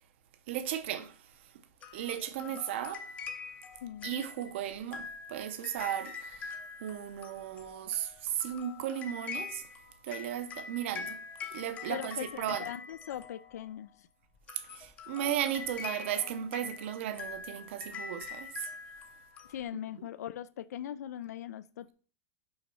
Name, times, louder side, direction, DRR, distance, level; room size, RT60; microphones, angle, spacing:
voice 1, 0.5-1.2 1.9-3.1 4.0-9.6 10.0-11.2 11.5-12.7 14.7-18.7 19.7-19.8, right 11 dB, 45° right, 0.7 m, -35 dB
sound 1, 1.8-13.8 14.4-19.6, left 5 dB, 15° left, 0.5 m, -44 dB
voice 2, 3.8-4.1 11.9-14.1 19.5-21.9, left 11 dB, 90° left, 0.4 m, -40 dB
5.6 x 4.2 x 5.4 m
supercardioid pair, 175°, 9 cm